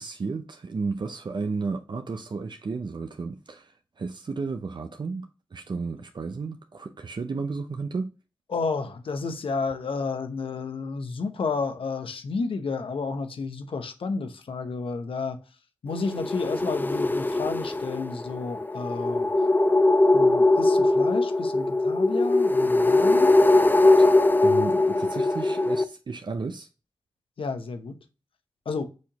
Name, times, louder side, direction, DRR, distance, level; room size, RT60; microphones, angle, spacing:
voice 1, 0.0-8.1 24.4-26.7, right 4 dB, 55° right, 0.5 m, -33 dB
voice 2, 8.5-15.4 15.8-19.3 20.1-23.5 27.4-28.0 28.7-28.8, left 4 dB, 80° left, 0.8 m, -31 dB
sound 1, 15.9-25.8, left 2 dB, 20° left, 0.5 m, -21 dB
6.3 x 2.8 x 2.8 m
cardioid pair, 45°, 9 cm